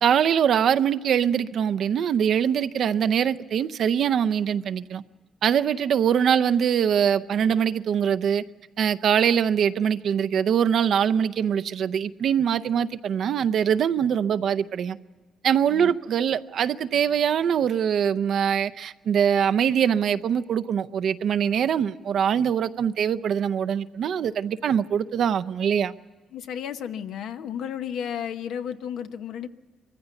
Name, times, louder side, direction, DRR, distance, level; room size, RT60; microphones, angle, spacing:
voice 1, 0.0-5.0 5.4-8.4 8.8-15.0 15.4-25.9, right 8 dB, 65° right, 0.6 m, -23 dB
voice 2, 26.3-29.5, left 8 dB, 80° left, 0.9 m, -33 dB
22.5 x 15.0 x 8.2 m
cardioid pair, 90°, 0 cm